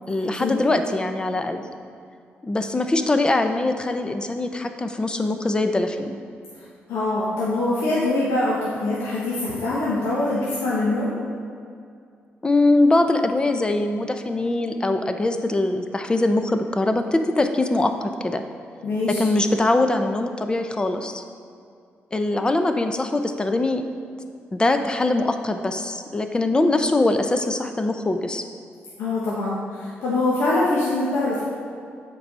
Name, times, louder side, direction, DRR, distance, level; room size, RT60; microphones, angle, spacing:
voice 1, 0.1-1.6 2.4-6.2 12.4-18.4 19.1-21.2 22.1-23.8 24.5-28.5, left 2 dB, 20° left, 7 dB, 0.6 m, -22 dB
voice 2, 6.9-11.1 18.8-19.2 29.0-31.4, left 2 dB, 85° left, -8 dB, 1.5 m, -23 dB
7.8 x 4.7 x 5.6 m, 2.3 s
cardioid pair, 95°, 4 cm